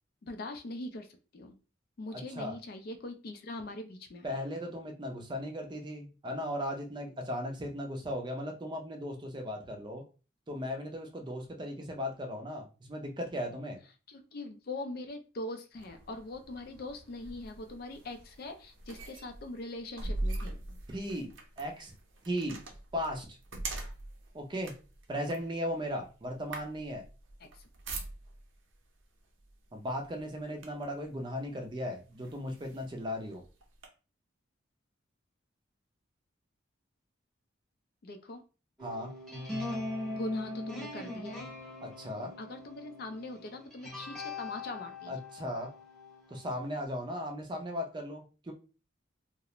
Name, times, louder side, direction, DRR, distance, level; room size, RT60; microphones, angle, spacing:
voice 1, 0.2-1.1 1.3-1.6 2.0-4.3 14.1-20.6 27.4-27.5 38.0-38.4 40.1-41.5 42.4-45.2, left 2 dB, 50° left, 7 dB, 0.4 m, -42 dB
voice 2, 2.1-2.5 4.2-10.0 10.5-13.8 20.9-21.3 21.6-21.9 22.3-22.6 22.9-23.4 24.3-24.7 25.1-27.0 29.7-33.4 38.8-39.1 41.8-42.3 45.1-45.7 46.3-48.5, equal, 25° right, 3 dB, 0.4 m, -37 dB
sound 1, 15.7-28.6 29.4-29.6 30.0-31.0 31.7-31.8 32.2-33.9, right 2 dB, 80° right, 0.6 m, -42 dB
sound 2, 38.8-46.8, left 2 dB, 5° left, 0.7 m, -41 dB
2.4 x 2.0 x 2.8 m, 0.33 s
head